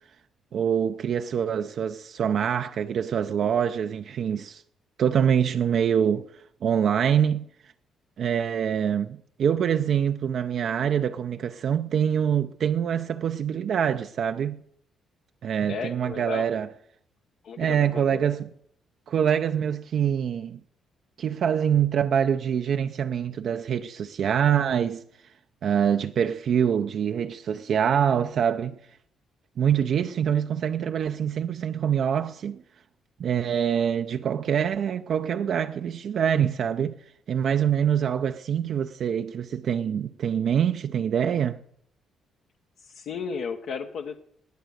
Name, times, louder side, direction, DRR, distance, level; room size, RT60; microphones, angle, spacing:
voice 1, 0.5-4.6 5.0-6.3 6.6-7.5 8.2-14.6 15.4-16.7 17.6-18.5 19.1-20.6 21.2-25.0 25.6-28.8 29.6-32.6 33.2-37.0 37.3-41.6, right 8 dB, 65° right, 0.5 m, -25 dB
voice 2, 15.7-16.5 17.4-18.2 42.8-44.2, left 5 dB, 75° left, 1.0 m, -34 dB
19.5 x 8.1 x 6.5 m
cardioid pair, 90°, 0 cm